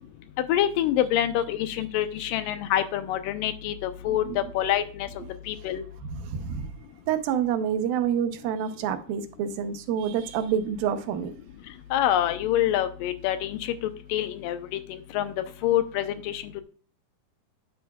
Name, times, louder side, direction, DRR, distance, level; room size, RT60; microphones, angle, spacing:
voice 1, 0.4-5.1 5.5-5.8 11.9-13.8 14.1-15.3 15.6-16.4, left 11 dB, 80° left, 2.3 m, -26 dB
voice 2, 4.1-4.4 5.2-5.3 6.1-6.7 7.1-11.4, right 8 dB, 85° right, 2.7 m, -28 dB
9.5 x 8.5 x 2.3 m
omnidirectional pair, 4.1 m